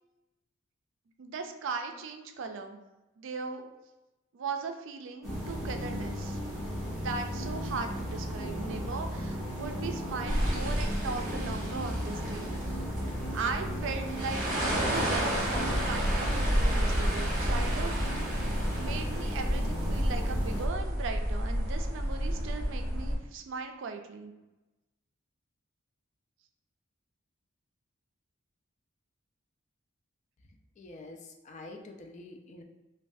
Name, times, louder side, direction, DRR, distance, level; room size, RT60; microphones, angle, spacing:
voice 1, 1.2-2.8 3.2-3.7 4.3-6.4 6.9-12.5 13.3-18.2 18.8-24.3, right 4 dB, 65° right, 6 dB, 0.3 m, -38 dB
sound 1, 5.2-20.6, equal, ahead, 1.0 m, -35 dB
sound 2, 10.3-23.1, equal, 40° right, 0.7 m, -31 dB
voice 2, 30.8-32.6, left 2 dB, 35° left, 3 dB, 0.3 m, -47 dB
3.1 x 2.2 x 2.6 m, 1.0 s
head